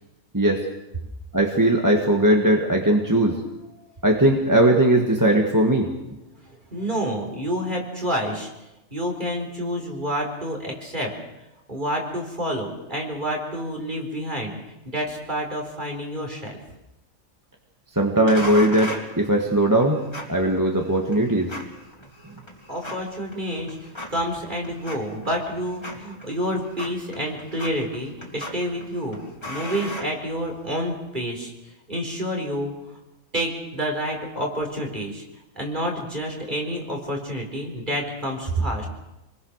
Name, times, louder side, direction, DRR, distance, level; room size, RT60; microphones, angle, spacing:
voice 1, 0.3-0.6 1.3-3.4 4.0-5.9 17.9-20.0 20.3-21.5, right 1 dB, 15° right, 1 dB, 1.9 m, -19 dB
voice 2, 6.7-8.5 8.9-11.1 11.7-14.5 14.9-16.6 22.7-23.8 24.1-31.5 31.9-32.7 33.3-35.2 35.5-38.9, equal, 35° right, 1 dB, 4.8 m, -28 dB
sound 1, 18.3-30.8, left 1 dB, 20° left, 3.1 m, -38 dB
27.5 x 21.0 x 6.6 m, 0.96 s
omnidirectional pair, 1.4 m